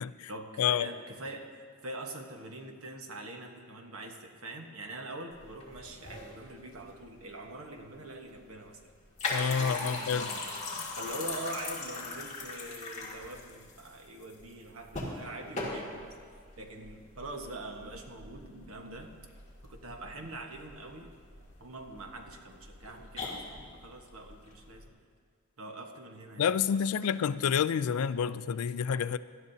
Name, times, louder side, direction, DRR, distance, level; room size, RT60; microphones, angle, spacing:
voice 1, 0.3-8.8 9.6-10.6 11.0-16.1 16.6-19.1 19.6-21.1 21.6-25.0 25.6-26.8, right 2 dB, 85° right, 3 dB, 1.3 m, -44 dB
sound 1, 5.3-24.9, left 3 dB, 35° left, 2.2 m, -41 dB
voice 2, 9.3-10.3 26.4-29.2, left 7 dB, 85° left, 15 dB, 0.4 m, -28 dB
17.5 x 12.5 x 2.8 m, 2.1 s
head